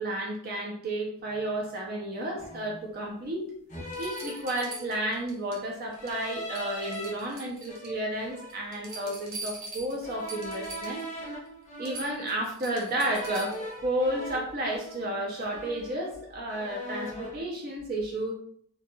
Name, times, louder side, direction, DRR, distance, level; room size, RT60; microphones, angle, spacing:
voice 1, 0.0-3.5 4.0-11.0 11.8-18.3, right 1 dB, 45° right, 0 dB, 0.4 m, -32 dB
sound 1, 1.3-1.5 2.4-2.9 3.7-5.1 5.9-7.1 7.7-9.2 10.0-12.4 13.0-15.2 15.5-16.2 16.5-17.4, equal, 35° left, 0.5 m, -40 dB
sound 2, 3.2-3.3 3.9-5.6 5.9-6.3 6.5-8.0 8.4-11.1 11.5-11.6 11.8-13.7 15.4-15.5, right 2 dB, 80° right, 0.8 m, -43 dB
2.6 x 2.2 x 2.6 m, 0.63 s
head